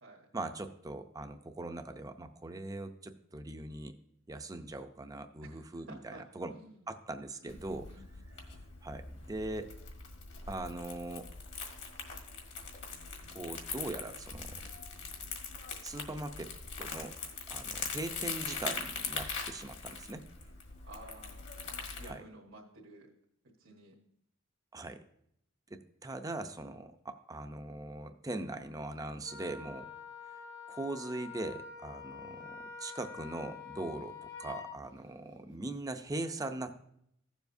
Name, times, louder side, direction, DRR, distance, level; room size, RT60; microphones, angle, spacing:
voice 1, 0.3-3.9 4.3-6.5 6.9-7.9 8.8-9.7 10.5-11.3 13.3-14.5 15.8-17.2 17.5-20.3 22.1-22.2 24.7-25.0 25.7-29.9 30.7-36.8, right 2 dB, 20° right, 8 dB, 0.5 m, -41 dB
voice 2, 5.4-6.9 7.4-8.1 20.8-21.4 22.0-23.1 23.6-24.0, right 2 dB, 75° right, -3 dB, 1.3 m, -52 dB
Crumpling crinkling, 7.5-22.1, left 5 dB, 60° left, 1.6 m, -42 dB
Wind instrument woodwind instrument, 29.2-34.7, left 6 dB, 80° left, 4.1 m, -47 dB
15.5 x 7.1 x 2.6 m, 0.72 s
head